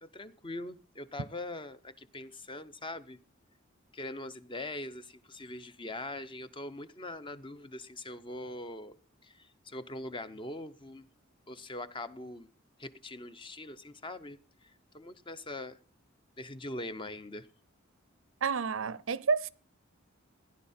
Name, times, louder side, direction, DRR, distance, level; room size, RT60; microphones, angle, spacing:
voice 1, 0.0-3.2 3.9-8.9 9.2-11.0 11.5-12.5 12.8-15.8 16.4-17.5, left 2 dB, 25° left, 0.7 m, -42 dB
voice 2, 18.4-19.5, right 5 dB, 70° right, 0.6 m, -30 dB
16.0 x 10.5 x 4.3 m
head